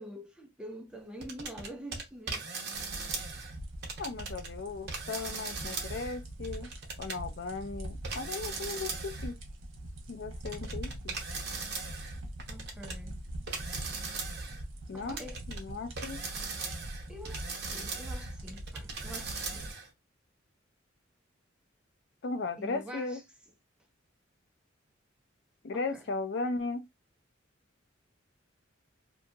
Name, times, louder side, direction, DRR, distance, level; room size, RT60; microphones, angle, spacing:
voice 1, 0.0-2.4 12.5-13.2 14.9-15.4 17.1-19.8 22.6-23.2 25.7-26.1, equal, 5° right, 0.5 m, -46 dB
sound 1, 1.2-3.6 3.8-4.5 4.9-7.2 8.0-9.3 10.5-13.0 13.5-14.6 15.1-15.6 16.0-19.9, right 4 dB, 55° right, 0.8 m, -39 dB
sound 2, 2.7-19.7, right 1 dB, 90° right, 0.8 m, -43 dB
voice 2, 4.0-6.7 7.0-9.4 10.1-11.2 14.9-15.2 15.5-16.2 22.2-23.2 25.6-26.8, left 3 dB, 60° left, 0.5 m, -36 dB
2.8 x 2.7 x 2.3 m
head